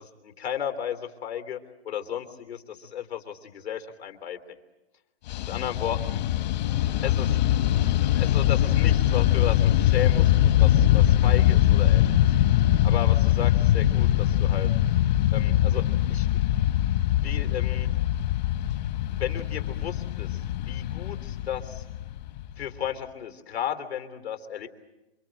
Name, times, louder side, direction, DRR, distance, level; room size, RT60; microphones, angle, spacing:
voice 1, 0.0-4.4 5.4-6.2 7.0-7.4 8.1-12.1 12.8-14.7 15.3-15.8 16.1-16.3 17.2-17.9 19.2-21.8 22.6-24.7, left 9 dB, 80° left, 8 dB, 3.4 m, -34 dB
Fixed-wing aircraft airplane, 5.3-22.7, left 12 dB, 45° left, 1.3 m, -22 dB
28.0 x 25.5 x 7.7 m, 1.0 s
hypercardioid pair, 150°, 32 cm